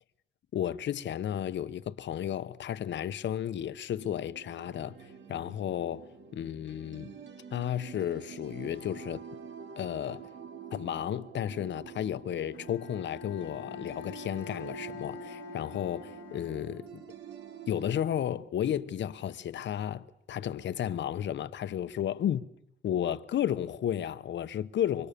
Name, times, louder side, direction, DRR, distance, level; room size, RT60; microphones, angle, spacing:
voice 1, 0.5-5.0 5.3-7.2 7.5-9.2 9.8-10.3 10.7-17.0 17.7-22.4 22.8-25.1, left 10 dB, 65° left, 1.1 m, -33 dB
sound 1, 3.9-17.9, right 7 dB, 65° right, 2.5 m, -47 dB
Bowed string instrument, 12.5-17.1, left 10 dB, 85° left, 1.7 m, -46 dB
29.5 x 24.5 x 6.9 m
cardioid pair, 125°, 20 cm